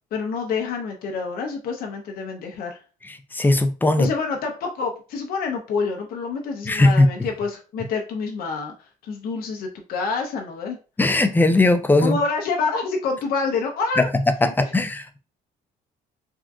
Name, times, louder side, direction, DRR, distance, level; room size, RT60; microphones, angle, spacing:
voice 1, 0.1-2.8 4.0-8.7 9.0-10.8 12.0-14.1 14.4-14.5, left 4 dB, 60° left, 2 dB, 0.6 m, -27 dB
voice 2, 3.3-4.1 6.7-7.1 11.0-12.2 14.0-14.1 14.4-15.2, left 2 dB, 10° left, 8 dB, 0.4 m, -18 dB
3.6 x 2.4 x 2.3 m, 0.34 s
cardioid pair, 110°, 17 cm